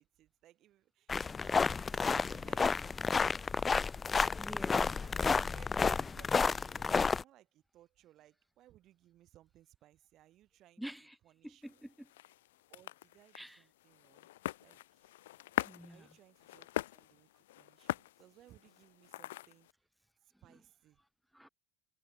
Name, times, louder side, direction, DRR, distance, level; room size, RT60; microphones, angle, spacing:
voice 1, 0.0-3.6 5.0-10.8 11.2-11.9 12.7-14.3 14.6-15.2 15.9-17.3 17.6-19.7 20.4-21.0, right 14 dB, 55° right, 4.5 m, -63 dB
sound 1, 1.1-7.2, left 5 dB, 25° left, 0.5 m, -31 dB
voice 2, 4.4-4.9 10.8-11.2 11.4-12.1 13.3-13.6 15.6-16.1 21.3-21.5, equal, ahead, 3.1 m, -47 dB
sound 2, 11.6-19.7, left 15 dB, 90° left, 0.7 m, -43 dB
supercardioid pair, 100°, 0 cm